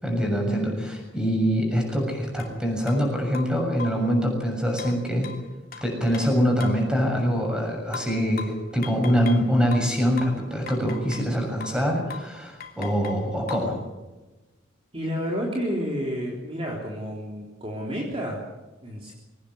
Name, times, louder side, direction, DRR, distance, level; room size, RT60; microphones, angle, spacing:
voice 1, 0.0-5.3 5.8-13.8, equal, 5° right, 1 dB, 7.0 m, -24 dB
sound 1, 2.4-2.5 2.9-3.0 3.3-4.1 4.8-6.9 7.9-9.5 9.7-11.3 11.6-11.8 12.1-12.3 12.6-13.7, left 5 dB, 45° left, 2.9 m, -40 dB
voice 2, 14.9-18.4 18.8-19.1, equal, 30° right, -2 dB, 3.6 m, -30 dB
23.0 x 18.0 x 8.1 m, 1.1 s
head